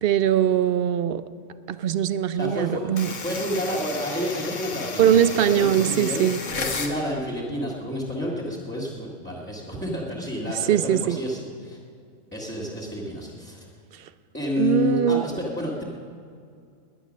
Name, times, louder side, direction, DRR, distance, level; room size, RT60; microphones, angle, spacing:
voice 1, 0.0-1.2 1.7-3.1 5.0-6.4 10.7-11.2 14.6-15.3, right 10 dB, 60° right, 13 dB, 0.7 m, -21 dB
voice 2, 2.3-6.2 6.5-11.8 12.3-13.7 14.3-15.8, left 1 dB, 10° left, -6 dB, 1.9 m, -30 dB
sound 1, 3.0-7.0, left 4 dB, 70° left, 1.7 m, -33 dB
19.5 x 10.5 x 6.3 m, 2.3 s
omnidirectional pair, 1.4 m